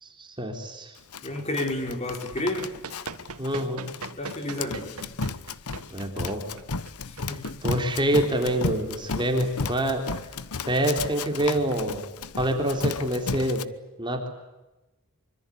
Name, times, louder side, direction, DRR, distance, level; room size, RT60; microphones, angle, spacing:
voice 1, 0.0-0.9 3.4-3.9 5.9-6.4 7.6-10.0 10.7-12.0 12.4-13.6 14.0-14.3, right 1 dB, 20° right, 3 dB, 3.8 m, -26 dB
Run, 1.1-13.6, left 4 dB, 85° left, 1.1 m, -34 dB
voice 2, 1.2-2.7 4.2-5.1 7.1-7.5, left 1 dB, 30° left, 5 dB, 4.8 m, -31 dB
Run 2, 2.3-8.4, right 4 dB, 90° right, 2.2 m, -42 dB
25.5 x 25.0 x 8.5 m, 1.0 s
head